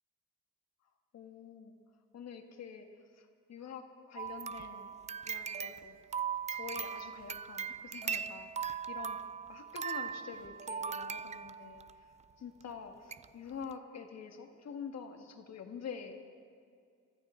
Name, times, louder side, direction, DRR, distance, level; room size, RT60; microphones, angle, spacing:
voice 1, 1.1-1.7 2.1-2.9 3.2-4.9 5.2-6.0 6.5-9.2 9.5-11.8 12.4-16.2, left 6 dB, 60° left, 5 dB, 1.6 m, -47 dB
sound 1, 4.2-11.9 12.6-12.7 13.1-13.2 13.6-13.7, right 7 dB, 25° right, 0.4 m, -39 dB
24.0 x 13.0 x 3.8 m, 2.3 s
cardioid pair, 90°, 30 cm